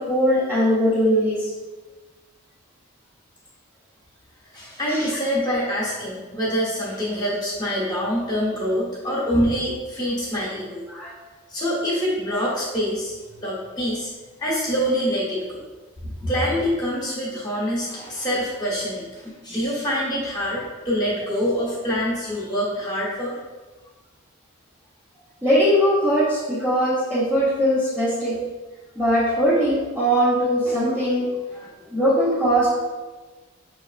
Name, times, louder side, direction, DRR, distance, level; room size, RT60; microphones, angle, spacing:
voice 1, 0.0-1.5 4.9-5.1 10.9-11.1 16.2-16.3 25.4-28.4 29.0-32.7, equal, 10° right, -12 dB, 0.9 m, -21 dB
voice 2, 4.5-10.8 11.5-14.1 14.4-15.6 16.3-23.4, equal, 20° left, -6 dB, 1.2 m, -25 dB
5.7 x 3.2 x 2.5 m, 1.2 s
head